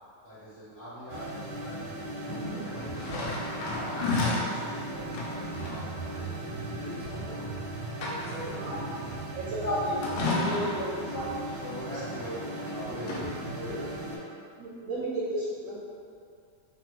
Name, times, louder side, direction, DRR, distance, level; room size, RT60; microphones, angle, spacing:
voice 1, 0.2-3.2 3.6-7.4 8.2-8.9, equal, 35° left, -12 dB, 1.2 m, -44 dB
sound 1, 1.1-14.2, right 1 dB, 90° right, 1.3 m, -37 dB
sound 2, 2.3-4.5 5.1-5.8 7.3-7.4 7.8-8.5 10.0-10.9 12.2-12.7 13.0-13.2, left 2 dB, 85° left, 1.3 m, -32 dB
voice 2, 9.3-11.2 11.8-11.9 14.6-15.8, right 1 dB, 70° right, -8 dB, 0.8 m, -33 dB
voice 3, 10.3-11.3 11.6-12.4 12.7-13.2 13.5-14.3, equal, 70° left, -11 dB, 0.5 m, -39 dB
3.4 x 2.1 x 2.8 m, 2.3 s
omnidirectional pair, 1.9 m